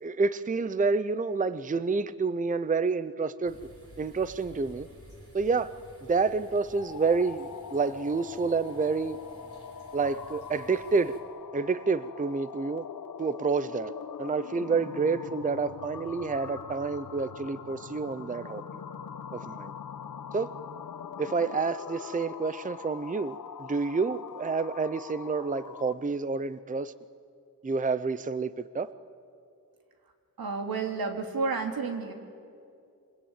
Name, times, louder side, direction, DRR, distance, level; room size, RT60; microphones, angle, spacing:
voice 1, 0.0-3.6 4.0-4.9 5.3-5.7 6.1-9.2 9.9-11.2 11.5-12.8 13.2-13.9 14.2-18.6 19.3-19.7 20.3-20.5 21.2-26.9 27.6-28.9, right 4 dB, 25° right, 15 dB, 0.6 m, -29 dB
sound 1, 3.4-11.2, right 1 dB, 40° right, 4.4 m, -53 dB
sound 2, 6.7-26.1, left 7 dB, 65° left, 1.3 m, -43 dB
voice 2, 30.4-32.1, right 4 dB, 85° right, 4 dB, 3.0 m, -31 dB
27.5 x 23.5 x 9.0 m, 2.4 s
wide cardioid pair, 125°, 35 cm